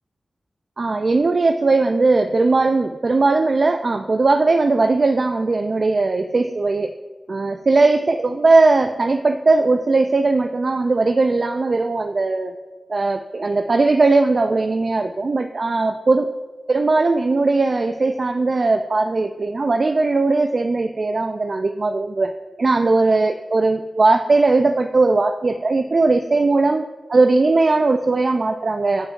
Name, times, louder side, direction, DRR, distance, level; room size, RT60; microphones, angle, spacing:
voice 1, 0.8-7.0 7.3-12.5 12.9-16.3 16.7-29.1, right 3 dB, 55° right, 6 dB, 0.3 m, -18 dB
11.5 x 5.1 x 2.5 m, 1.2 s
wide cardioid pair, 75°, 0 cm